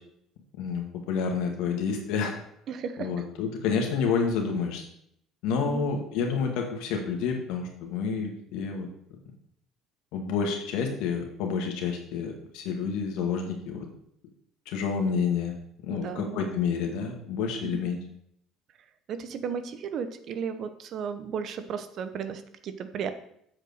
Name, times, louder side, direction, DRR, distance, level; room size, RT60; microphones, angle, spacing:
voice 1, 0.6-2.3 3.0-4.8 5.4-8.9 10.1-13.9 14.7-15.5 15.8-18.0, left 5 dB, 80° left, 3 dB, 1.9 m, -29 dB
voice 2, 2.7-3.2 5.6-5.8 15.9-16.5 17.6-17.8 19.1-23.1, right 7 dB, 50° right, 10 dB, 0.8 m, -35 dB
7.6 x 5.0 x 6.5 m, 0.70 s
cardioid pair, 120°, 0 cm